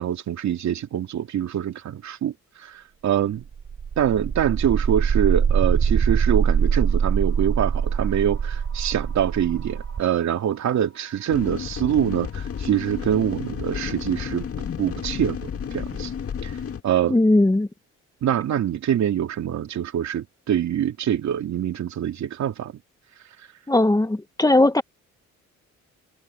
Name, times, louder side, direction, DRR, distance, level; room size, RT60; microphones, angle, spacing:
voice 1, 0.0-2.3 2.6-3.4 4.0-16.1 16.4-16.5 16.8-17.2 18.2-22.7, right 10 dB, 65° right, 2.7 m, -25 dB
sound 1, 3.4-13.4, right 7 dB, 45° right, 4.4 m, -24 dB
sound 2, 11.3-16.8, left 7 dB, 50° left, 2.4 m, -32 dB
voice 2, 17.1-17.7 23.7-24.8, left 2 dB, 10° left, 1.5 m, -18 dB
cardioid pair, 90°, 30 cm